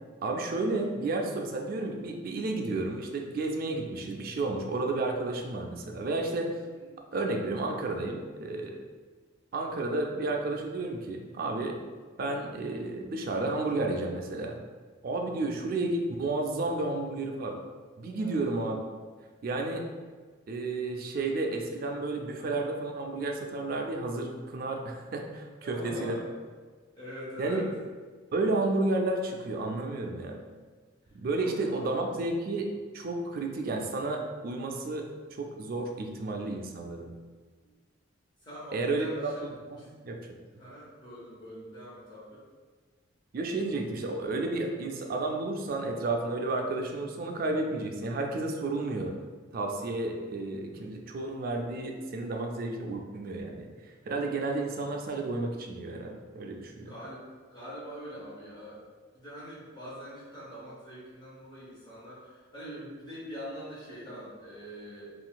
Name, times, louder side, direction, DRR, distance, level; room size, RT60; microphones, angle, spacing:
voice 1, 0.2-6.5 7.1-8.8 9.5-11.8 12.2-14.6 15.0-17.6 18.0-18.8 19.4-19.8 20.5-26.2 27.4-27.7 28.3-30.4 31.1-37.1 38.7-39.1 39.4-40.2 43.3-49.1 49.5-53.7 54.1-56.9, right 2 dB, 50° right, 3 dB, 0.4 m, -32 dB
voice 2, 18.1-18.5 25.6-26.3 26.9-27.7 31.3-32.1 37.6-37.8 38.4-39.4 39.8-39.9 40.6-42.4 56.9-57.2 57.5-58.8 59.1-65.1, equal, 25° left, -8 dB, 0.8 m, -43 dB
3.7 x 2.4 x 2.3 m, 1.5 s
head